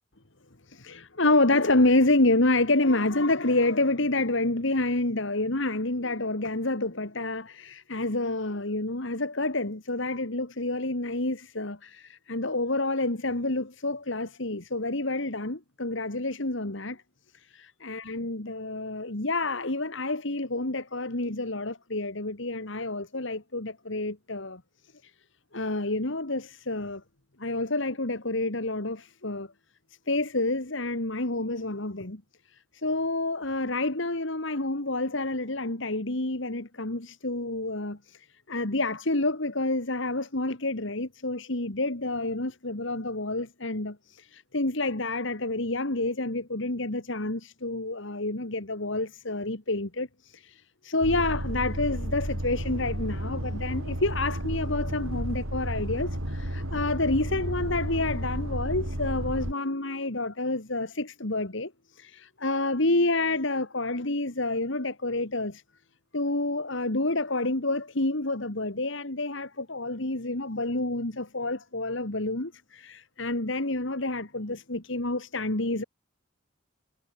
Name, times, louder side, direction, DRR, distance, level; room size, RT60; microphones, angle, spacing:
voice 1, 0.7-17.0 17.3-24.6 25.0-25.1 25.5-27.0 27.4-29.5 30.1-32.2 32.5-65.6 66.1-75.8, left 2 dB, 60° left, 2.0 m, -28 dB
sound 1, 51.0-59.5, equal, 75° right, 6.7 m, -32 dB
head